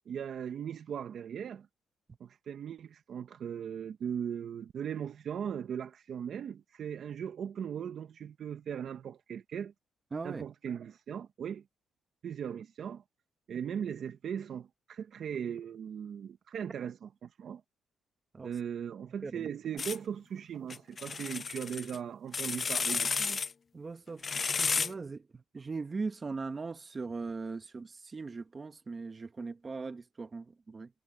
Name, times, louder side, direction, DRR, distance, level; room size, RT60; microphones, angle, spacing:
voice 1, 0.1-1.7 2.2-9.7 10.2-11.6 12.2-13.0 13.5-17.6 18.4-23.4, right 8 dB, 60° right, 1.1 m, -38 dB
voice 2, 10.1-10.4 18.3-18.5 19.2-19.5 23.7-24.2 24.6-30.9, right 4 dB, 30° right, 1.7 m, -39 dB
sound 1, 19.8-20.0 20.7-22.0 22.3-23.5 24.2-24.9, left 5 dB, 40° left, 0.5 m, -32 dB
cardioid pair, 90°, 0 cm